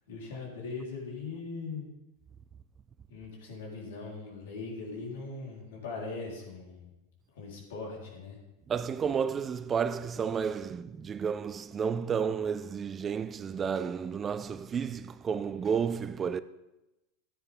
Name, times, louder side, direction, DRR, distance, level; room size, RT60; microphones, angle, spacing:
voice 1, 0.1-1.9 3.1-6.9 7.3-8.4, left 4 dB, 80° left, 3.9 m, -40 dB
voice 2, 8.7-16.4, right 6 dB, 25° right, 0.4 m, -31 dB
13.0 x 9.6 x 3.7 m
hypercardioid pair, 105°, 0 cm